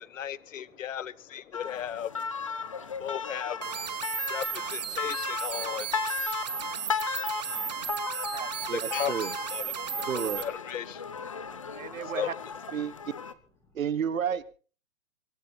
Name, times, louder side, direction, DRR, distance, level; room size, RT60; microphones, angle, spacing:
voice 1, 0.0-2.3 3.0-3.9 4.2-6.0 6.5-6.7 8.7-9.6 9.9-11.1 12.0-12.4, left 9 dB, 65° left, 21 dB, 1.0 m, -36 dB
sound 1, 1.5-13.3, left 5 dB, 25° left, 0.7 m, -36 dB
sound 2, 3.6-10.5, right 8 dB, 30° right, 1.1 m, -35 dB
voice 2, 6.5-7.4 8.4-8.7 11.3-12.1 13.6-13.8, left 2 dB, 5° left, 4 dB, 2.3 m, -66 dB
voice 3, 8.2-9.3 10.0-10.4 11.7-12.3 12.7-12.9 13.7-14.4, right 8 dB, 75° right, 16 dB, 1.5 m, -32 dB
24.5 x 11.0 x 4.3 m, 0.39 s
hypercardioid pair, 175°, 41 cm